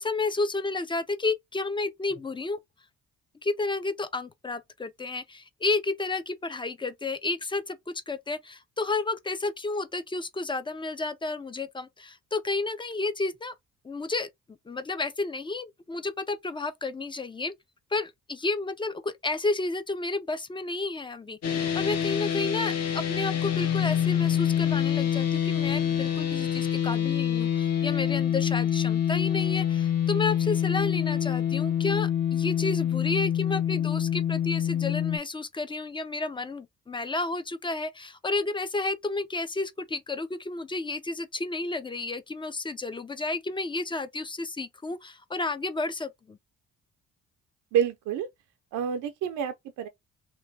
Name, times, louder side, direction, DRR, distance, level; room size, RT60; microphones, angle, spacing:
voice 1, 0.0-2.6 3.4-13.5 13.8-14.3 14.7-17.5 17.9-46.4, left 3 dB, 15° left, 0.3 m, -31 dB
sound 1, 21.4-35.2, left 9 dB, 55° left, 0.9 m, -26 dB
voice 2, 47.7-48.3 48.7-49.9, right 8 dB, 80° right, 0.5 m, -28 dB
3.0 x 2.2 x 2.6 m
cardioid pair, 90°, 30 cm